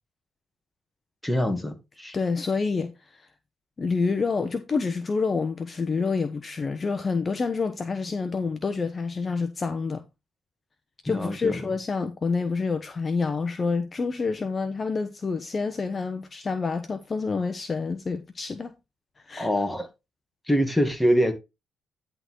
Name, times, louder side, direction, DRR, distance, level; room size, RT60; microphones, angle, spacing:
voice 1, 1.2-2.1 11.1-11.6 19.4-19.9 20.5-21.3, equal, 5° left, 2.1 m, -24 dB
voice 2, 2.1-3.3 3.8-10.0 11.0-18.7 19.2-19.5, left 4 dB, 35° left, 1.0 m, -28 dB
10.5 x 3.9 x 4.7 m
cardioid pair, 90°, 0 cm